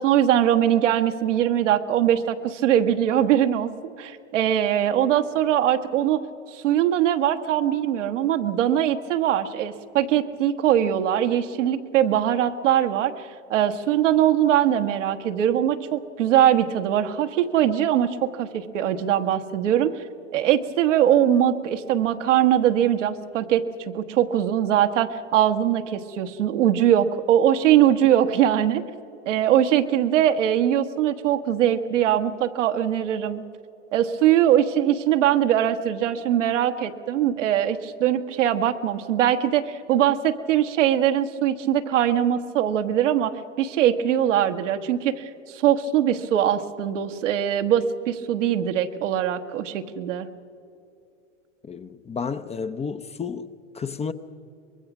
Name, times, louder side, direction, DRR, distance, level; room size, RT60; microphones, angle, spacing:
voice 1, 0.0-3.7 4.0-6.2 6.5-19.9 20.3-23.6 23.9-28.8 29.3-33.4 33.9-50.3, right 10 dB, 75° right, 1.3 m, -21 dB
voice 2, 51.6-54.1, left 5 dB, 15° left, 0.6 m, -32 dB
24.0 x 22.0 x 6.0 m
hypercardioid pair, 95°, 37 cm